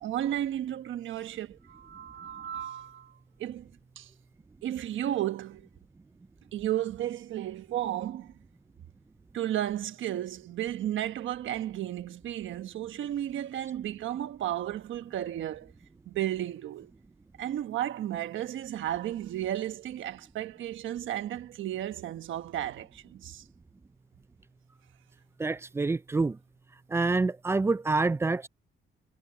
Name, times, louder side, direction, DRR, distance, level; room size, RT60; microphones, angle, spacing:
voice 1, 0.0-3.7 4.0-4.1 4.6-5.7 6.5-8.3 9.3-15.7 16.1-16.9 17.4-23.4, right 12 dB, 75° right, 1.3 m, -33 dB
voice 2, 25.4-26.4 26.9-28.5, right 3 dB, 15° right, 0.3 m, -27 dB
cardioid pair, 150°, 20 cm